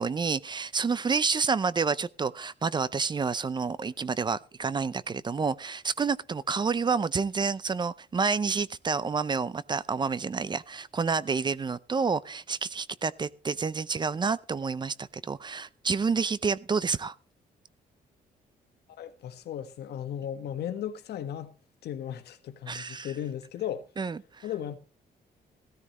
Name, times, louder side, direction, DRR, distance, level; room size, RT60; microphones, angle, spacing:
voice 1, 0.0-17.1 22.7-23.1 24.0-24.4, right 5 dB, 25° right, 0.5 m, -29 dB
voice 2, 19.0-21.6 21.8-23.8 24.4-24.8, left 10 dB, 85° left, 1.5 m, -36 dB
16.0 x 13.5 x 3.1 m
cardioid pair, 125°, 17 cm